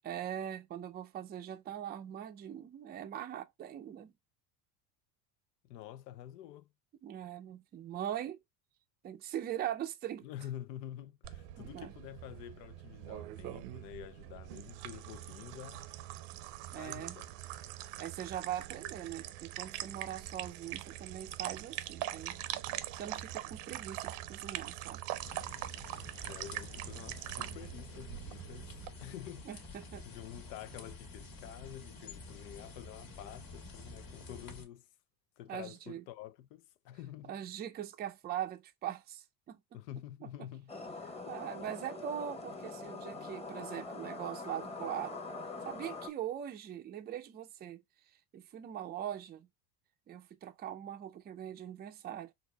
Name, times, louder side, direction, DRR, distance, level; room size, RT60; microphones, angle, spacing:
voice 1, 0.0-4.1 7.0-8.4 9.0-10.3 11.6-11.9 16.7-17.2 18.0-22.4 22.7-25.0 29.5-30.0 35.5-36.0 37.3-39.6 40.2-40.5 41.1-45.2 45.6-47.8 48.3-49.5 50.1-52.3, right 10 dB, 20° right, 0.4 m, -41 dB
voice 2, 5.6-6.7 10.2-15.9 16.8-17.3 26.2-29.7 30.1-34.9 35.4-37.4 39.7-40.7, left 12 dB, 85° left, 0.6 m, -48 dB
sound 1, 11.2-28.9, right 14 dB, 70° right, 0.6 m, -43 dB
sound 2, 25.2-34.7, left 3 dB, 45° left, 1.4 m, -49 dB
sound 3, 40.7-46.1, left 3 dB, 15° left, 1.0 m, -43 dB
4.5 x 2.6 x 2.2 m
supercardioid pair, 100°, 48 cm